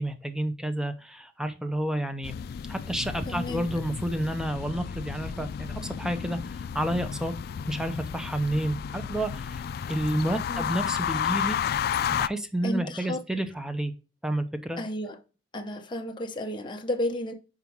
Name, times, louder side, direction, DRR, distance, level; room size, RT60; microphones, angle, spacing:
voice 1, 0.0-2.4 2.7-7.3 7.7-9.6 9.9-11.6 12.1-13.9 14.2-14.8, right 1 dB, 5° right, 0.7 m, -30 dB
sound 1, 2.2-12.3, left 8 dB, 60° left, 0.3 m, -32 dB
voice 2, 3.3-3.6 10.5-10.8 12.6-13.2 14.8-15.2 15.5-17.3, left 1 dB, 25° left, 0.7 m, -32 dB
5.5 x 4.9 x 4.5 m
head